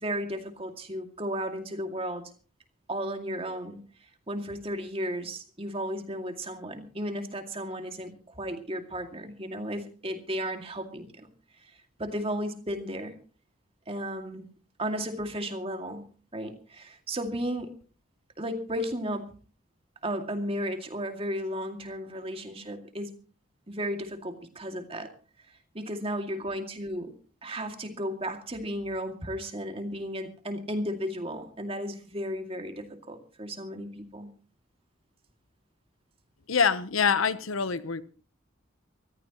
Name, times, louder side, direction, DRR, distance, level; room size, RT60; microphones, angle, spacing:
voice 1, 0.0-2.3 2.9-3.8 4.3-11.3 11.6-11.7 12.0-13.2 13.9-14.5 14.8-16.0 16.3-17.7 18.4-19.3 20.0-23.2 23.7-25.1 25.7-27.1 27.4-34.3, equal, 30° right, 2.3 m, -34 dB
voice 2, 36.5-38.0, left 6 dB, 85° left, 1.0 m, -25 dB
25.0 x 14.5 x 3.0 m
head